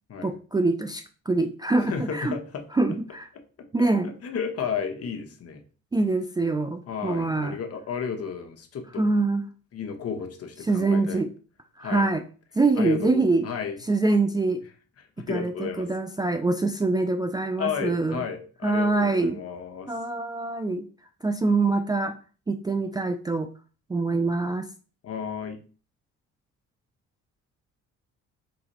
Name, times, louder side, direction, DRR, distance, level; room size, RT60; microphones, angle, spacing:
voice 1, 0.2-2.4 2.7-3.3 3.7-4.1 5.9-7.6 9.0-9.4 10.7-11.3 11.8-12.2 12.5-13.5 13.9-14.6 15.3-18.2 18.6-19.4 19.9-20.9 21.2-22.1 22.5-23.5 23.9-24.7, right 3 dB, 15° right, 7 dB, 0.3 m, -24 dB
voice 2, 1.9-2.6 3.8-5.6 6.9-9.1 9.7-11.2 11.8-12.0 12.8-13.8 15.2-15.9 17.6-19.9 25.0-25.6, left 6 dB, 55° left, 5 dB, 1.0 m, -33 dB
3.9 x 3.8 x 3.0 m, 0.38 s
cardioid pair, 90°, 30 cm